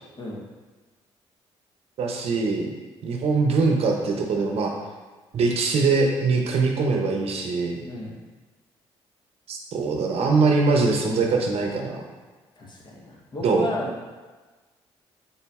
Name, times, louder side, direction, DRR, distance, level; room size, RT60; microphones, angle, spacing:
voice 1, 2.0-2.7 3.0-4.7 5.3-7.8 9.5-12.0 13.4-13.7, right 4 dB, 60° right, 1 dB, 0.7 m, -22 dB
voice 2, 12.6-13.9, left 1 dB, 40° left, -2 dB, 0.9 m, -32 dB
3.9 x 3.9 x 2.3 m, 1.3 s
supercardioid pair, 65°, 12 cm